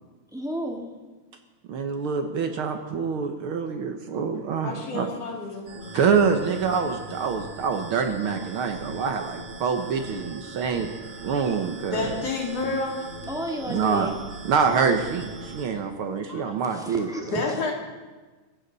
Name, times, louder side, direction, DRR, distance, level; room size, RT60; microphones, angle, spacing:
voice 1, 0.3-0.9 4.1-4.3 13.3-14.2 15.4-15.5 16.6-17.6, equal, ahead, 0 dB, 1.0 m, -33 dB
voice 2, 1.7-5.1 5.9-10.9 11.2-12.1 13.7-14.1 14.5-17.1, right 6 dB, 70° right, 5 dB, 1.2 m, -25 dB
voice 3, 4.6-5.7 11.9-13.0 16.3-16.5 17.3-17.7, left 3 dB, 50° left, -1 dB, 3.7 m, -29 dB
sound 1, 5.6-15.6, right 3 dB, 40° right, 3.5 m, -40 dB
23.5 x 15.0 x 4.1 m, 1.3 s
omnidirectional pair, 3.7 m